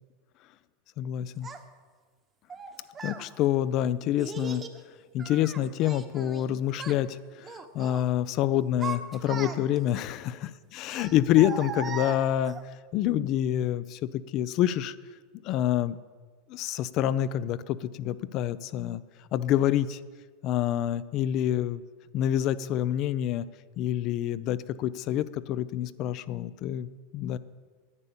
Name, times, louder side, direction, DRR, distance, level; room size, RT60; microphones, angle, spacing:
voice 1, 1.0-1.5 3.0-4.6 5.1-12.6 12.9-14.9 15.4-16.0 16.5-19.0 19.3-20.0 20.4-21.8 22.1-23.4 23.8-26.9 27.1-27.4, left 12 dB, 50° left, 16 dB, 0.5 m, -27 dB
Child speech kid speaking, 1.4-1.6 2.5-3.2 4.2-4.8 5.2-6.5 6.7-7.0 7.4-8.0 8.5-9.9 10.9-12.6, right 5 dB, 25° right, 1.1 m, -38 dB
9.7 x 9.7 x 7.1 m, 1.5 s
hypercardioid pair, 100°, 0 cm